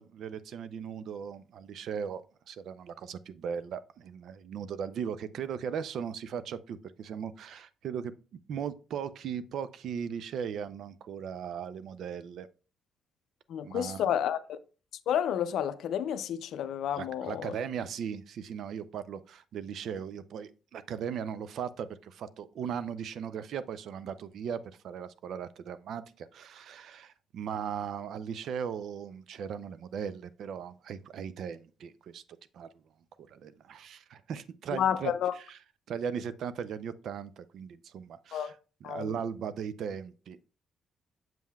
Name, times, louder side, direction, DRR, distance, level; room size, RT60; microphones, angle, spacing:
voice 1, 0.0-2.2 2.5-8.1 8.5-12.5 13.6-14.1 16.9-32.2 32.5-32.7 33.3-35.1 35.5-35.6 35.9-38.6 38.9-40.5, right 7 dB, 70° right, 0.4 m, -38 dB
voice 2, 13.5-14.6 15.1-17.6 34.7-35.3 38.3-38.5 38.8-39.1, left 9 dB, 75° left, 0.4 m, -30 dB
7.4 x 5.5 x 2.3 m
cardioid pair, 90°, 0 cm